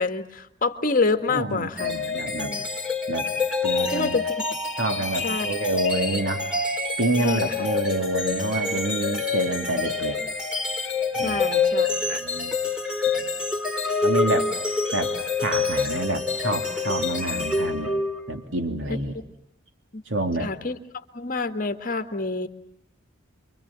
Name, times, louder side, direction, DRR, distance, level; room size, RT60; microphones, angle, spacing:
voice 1, 0.0-2.0 2.4-2.7 3.9-4.2 5.2-5.5 7.2-7.7 11.2-12.2 19.9-20.0 20.4-20.8 21.1-22.5, left 3 dB, 45° left, 8 dB, 1.7 m, -27 dB
voice 2, 1.3-2.5 3.1-3.3 3.6-4.2 4.8-6.5 7.0-10.2 11.1-11.4 11.9-12.6 13.1-13.3 14.0-14.5 14.9-15.1 15.4-17.9 18.3-19.2 20.1-20.5, right 1 dB, 70° right, 5 dB, 3.0 m, -27 dB
sound 1, 1.8-18.4, left 4 dB, 5° right, 3.4 m, -27 dB
29.0 x 24.0 x 7.5 m, 0.76 s
head